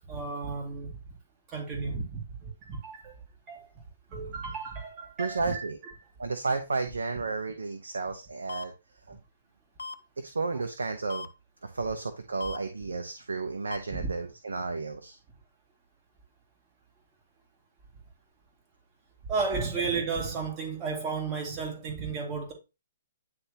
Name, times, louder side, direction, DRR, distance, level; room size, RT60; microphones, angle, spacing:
voice 1, 0.1-0.9 1.5-3.1 3.5-3.7 4.1-5.7 13.9-14.1 19.3-22.5, right 4 dB, 25° right, 2.2 m, -33 dB
voice 2, 5.2-5.8 6.2-8.7 9.1-9.2 10.2-11.3 11.6-15.2, right 3 dB, 90° right, 0.9 m, -32 dB
sound 1, 8.5-8.6 9.8-9.9 11.1-11.3 12.4-12.6 13.7-13.8, left 4 dB, 85° left, 0.6 m, -37 dB
9.7 x 3.5 x 2.9 m
hypercardioid pair, 140°, 0 cm